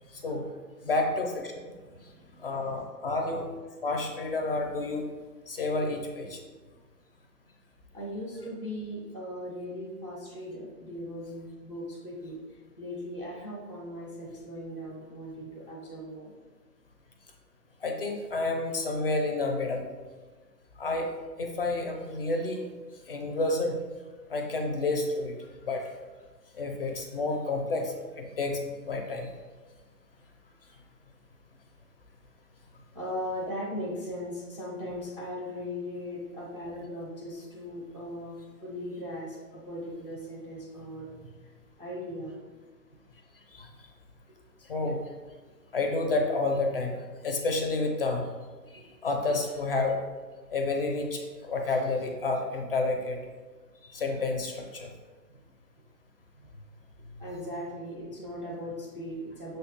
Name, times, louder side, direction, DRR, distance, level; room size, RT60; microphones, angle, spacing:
voice 1, 0.8-1.6 2.4-3.5 3.8-5.0 5.5-6.4 17.8-19.8 20.8-21.1 21.4-22.6 23.1-23.8 24.3-25.3 25.6-25.9 26.6-28.6 28.8-29.3 43.5-43.7 44.7-45.0 45.7-47.0 47.2-48.2 48.7-50.0 50.5-53.2 53.8-54.9, left 2 dB, 40° left, 3 dB, 0.4 m, -30 dB
voice 2, 1.9-2.8 7.9-12.4 12.8-16.3 32.9-41.3 41.8-42.3 48.7-48.8 57.2-59.6, equal, 20° right, -4 dB, 0.4 m, -38 dB
6.2 x 2.2 x 2.8 m, 1.3 s
hypercardioid pair, 140°, 49 cm